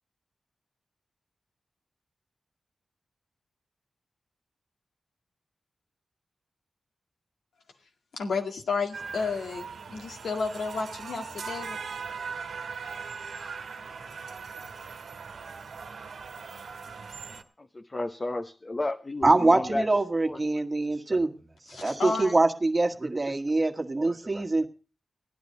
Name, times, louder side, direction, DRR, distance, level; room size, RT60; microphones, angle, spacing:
voice 1, 8.1-11.8 21.7-22.4, left 4 dB, 85° left, 3 dB, 2.0 m, -32 dB
sound 1, 8.9-17.4, right 5 dB, 80° right, 1.3 m, -40 dB
voice 2, 17.7-19.9 20.2-20.4, left 2 dB, 40° left, 7 dB, 0.8 m, -32 dB
voice 3, 19.2-21.3 21.8-24.7, right 2 dB, 30° right, 5 dB, 1.7 m, -24 dB
15.5 x 10.5 x 5.4 m, 0.36 s
cardioid pair, 55°, 0 cm